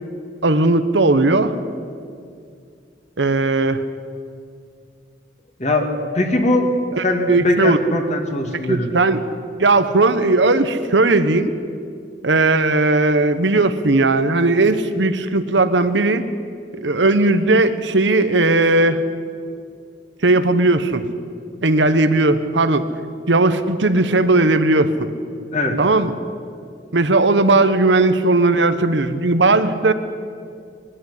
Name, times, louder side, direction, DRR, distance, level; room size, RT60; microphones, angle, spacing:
voice 1, 0.4-1.6 3.2-3.8 6.9-7.8 8.7-9.2 9.6-11.5 12.2-16.2 16.8-19.0 20.2-21.0 21.6-22.9 23.3-25.1 25.8-26.1 26.9-29.9, right 2 dB, 85° right, 11 dB, 1.1 m, -17 dB
voice 2, 6.1-6.7 7.0-8.9 25.5-25.8, left 2 dB, 40° left, 3 dB, 2.4 m, -20 dB
21.5 x 12.5 x 10.0 m, 2.3 s
head